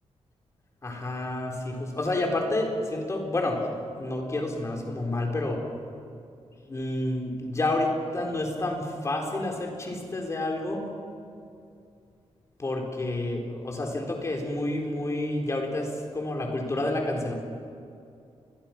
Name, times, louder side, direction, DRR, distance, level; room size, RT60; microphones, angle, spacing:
voice 1, 0.8-3.6 4.0-5.6 6.7-10.8 12.6-17.3, left 2 dB, 25° left, 1 dB, 4.0 m, -29 dB
29.5 x 23.5 x 6.0 m, 2.5 s
wide cardioid pair, 170°, 11 cm